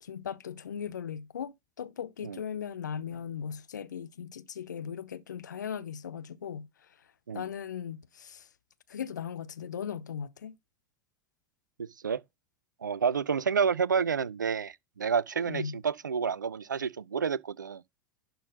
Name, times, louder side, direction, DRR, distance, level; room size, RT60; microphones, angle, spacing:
voice 1, 0.0-6.7 7.3-8.5 8.9-10.6 15.5-15.8, left 8 dB, 75° left, 0.5 m, -38 dB
voice 2, 11.8-12.2 12.8-17.8, right 6 dB, 85° right, 0.4 m, -29 dB
11.0 x 3.8 x 3.9 m
figure-of-eight pair, 75°, 10 cm